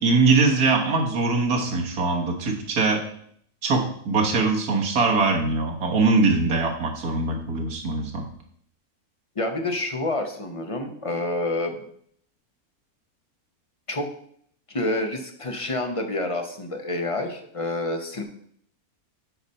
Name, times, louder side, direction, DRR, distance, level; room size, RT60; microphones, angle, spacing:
voice 1, 0.0-3.0 3.6-8.3, right 3 dB, 80° right, 1 dB, 1.8 m, -22 dB
voice 2, 9.4-11.8 13.9-14.1 14.7-18.2, left 2 dB, 30° left, 4 dB, 0.7 m, -28 dB
8.8 x 4.1 x 5.4 m, 0.66 s
omnidirectional pair, 1.6 m